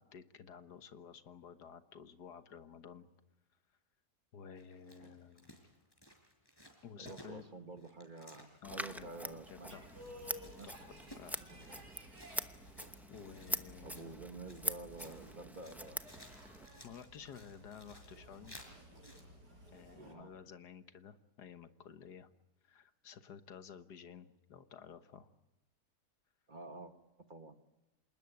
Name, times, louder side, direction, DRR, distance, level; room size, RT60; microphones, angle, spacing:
voice 1, 0.0-3.1 4.3-5.6 6.8-7.4 8.6-9.1 9.5-9.9 10.4-11.4 12.3-12.5 13.1-14.2 16.8-18.6 19.7-22.3 22.6-25.3, left 7 dB, 80° left, 10 dB, 1.8 m, -53 dB
sound 1, 4.6-19.2, equal, 15° left, 5.1 m, -59 dB
voice 2, 7.0-9.8 10.6-10.7 11.4-11.9 13.8-16.0 19.9-20.3 26.5-26.9 27.3-27.5, right 3 dB, 30° right, 8 dB, 1.5 m, -49 dB
Scissors, 8.6-16.7, equal, ahead, 0.5 m, -44 dB
sound 2, 9.7-20.1, equal, 85° right, 6.4 m, -56 dB
27.5 x 20.0 x 9.5 m, 1.0 s
omnidirectional pair, 1.7 m